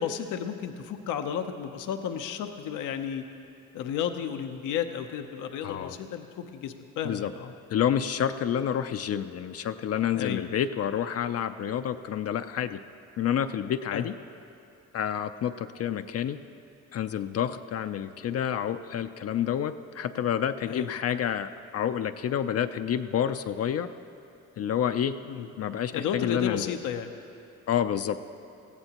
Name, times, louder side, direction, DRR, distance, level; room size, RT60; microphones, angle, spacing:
voice 1, 0.0-3.2 3.7-7.5 10.1-10.5 13.9-14.1 20.7-20.9 25.2-25.5 25.9-27.1, left 8 dB, 90° left, 7 dB, 0.7 m, -33 dB
voice 2, 5.6-5.9 7.0-7.3 7.7-12.8 13.2-14.2 14.9-16.4 16.9-23.9 24.6-25.1 25.6-26.7 27.7-28.2, left 9 dB, 55° left, 9 dB, 0.5 m, -29 dB
19.5 x 15.0 x 2.9 m, 2.7 s
cardioid pair, 90°, 30 cm